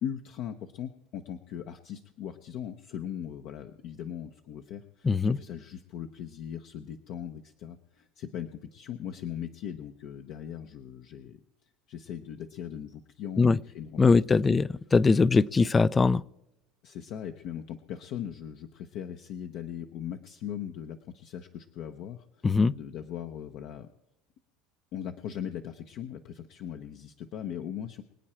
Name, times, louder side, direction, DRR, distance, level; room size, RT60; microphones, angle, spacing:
voice 1, 0.0-11.4 11.9-14.6 15.3-15.7 16.8-23.9 24.9-28.0, left 9 dB, 60° left, 6 dB, 0.9 m, -39 dB
voice 2, 5.1-5.4 13.4-13.6 14.0-16.2 22.4-22.7, left 4 dB, 20° left, 21 dB, 0.4 m, -21 dB
24.5 x 8.7 x 4.4 m, 0.90 s
supercardioid pair, 120°, 0 cm